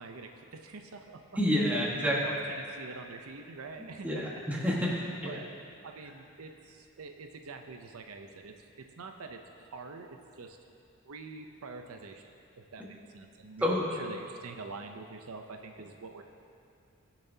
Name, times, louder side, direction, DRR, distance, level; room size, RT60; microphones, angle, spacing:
voice 1, 0.0-1.2 2.0-4.2 5.2-5.5 5.8-10.6 11.1-12.3 12.7-16.3, right 4 dB, 80° right, 5 dB, 0.6 m, -45 dB
voice 2, 1.4-2.2 4.0-5.4 13.6-13.9, equal, 5° right, -5 dB, 1.5 m, -29 dB
21.0 x 7.2 x 2.8 m, 2.5 s
head